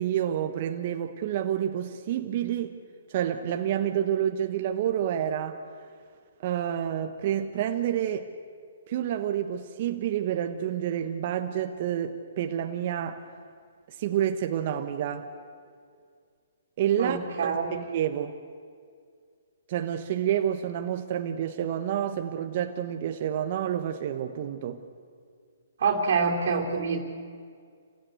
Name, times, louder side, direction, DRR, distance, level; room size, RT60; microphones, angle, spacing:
voice 1, 0.0-2.8 3.1-5.6 6.4-8.3 8.9-13.2 13.9-15.3 16.8-18.3 19.7-24.8, right 10 dB, 45° right, 1.3 m, -29 dB
voice 2, 17.0-17.8 25.8-27.0, right 5 dB, 65° right, 3.1 m, -26 dB
27.5 x 16.5 x 8.2 m
hypercardioid pair, 140°, 0 cm